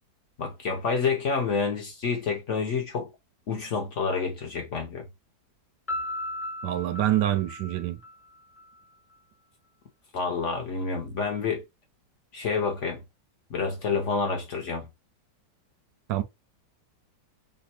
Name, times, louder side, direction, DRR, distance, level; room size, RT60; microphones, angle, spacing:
voice 1, 0.4-3.1 3.5-5.1 10.1-11.6 12.3-13.0 13.5-14.9, left 5 dB, 60° left, 0.8 m, -28 dB
Piano, 5.9-8.7, left 1 dB, 10° left, 0.6 m, -36 dB
voice 2, 6.6-8.0 16.1-16.2, right 13 dB, 80° right, 1.3 m, -26 dB
3.4 x 2.2 x 4.2 m
omnidirectional pair, 2.0 m